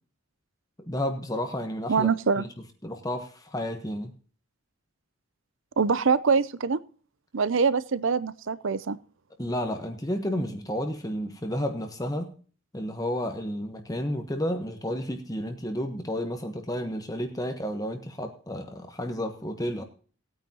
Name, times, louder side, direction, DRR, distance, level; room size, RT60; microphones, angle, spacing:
voice 1, 0.8-2.1 2.8-4.1 9.4-12.3 12.7-19.8, equal, 15° left, 5 dB, 1.1 m, -31 dB
voice 2, 1.9-2.4 5.8-6.8 7.3-9.0, right 5 dB, 60° right, 18 dB, 0.6 m, -24 dB
19.5 x 9.2 x 2.9 m, 0.41 s
head